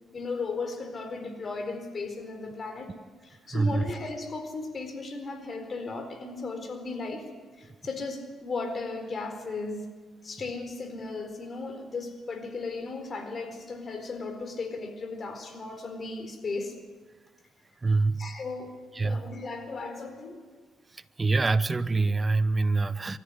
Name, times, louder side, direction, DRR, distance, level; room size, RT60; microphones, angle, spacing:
voice 1, 0.1-2.9 3.2-7.3 7.6-9.9 10.2-16.7 18.2-20.4, left 3 dB, 40° left, 7 dB, 4.3 m, -36 dB
voice 2, 3.5-3.8 17.8-18.2 19.0-19.2 21.2-23.2, right 3 dB, 25° right, 15 dB, 0.9 m, -25 dB
23.5 x 14.0 x 9.9 m, 1.4 s
cardioid pair, 90°, 0 cm